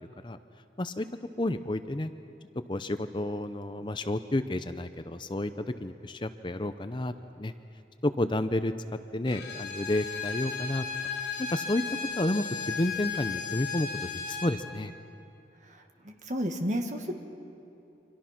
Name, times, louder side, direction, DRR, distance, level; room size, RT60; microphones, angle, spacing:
voice 1, 1.4-2.1 2.7-7.5 8.0-8.7 9.1-10.9 11.4-11.8 12.2-13.9 14.3-14.9, left 1 dB, 25° left, 10 dB, 0.6 m, -30 dB
Bowed string instrument, 9.3-14.6, left 6 dB, 70° left, 4.2 m, -35 dB
voice 2, 15.6-17.1, equal, 40° right, 4 dB, 1.9 m, -32 dB
28.5 x 25.0 x 6.0 m, 2.8 s
head